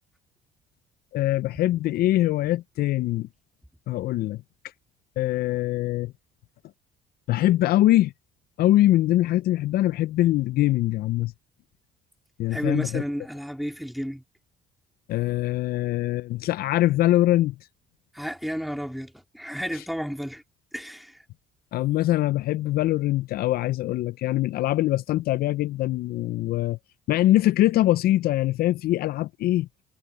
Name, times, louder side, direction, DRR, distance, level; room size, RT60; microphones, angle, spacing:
voice 1, 1.1-3.3 3.9-4.4 5.2-6.1 7.3-8.1 8.6-11.3 12.4-13.0 15.1-17.6 19.7-19.8 21.7-26.8 27.1-29.7, left 15 dB, 65° left, 0.4 m, -23 dB
voice 2, 12.5-14.2 18.1-20.4 20.7-21.2, equal, ahead, 3.5 m, -32 dB
cardioid pair, 110°, 17 cm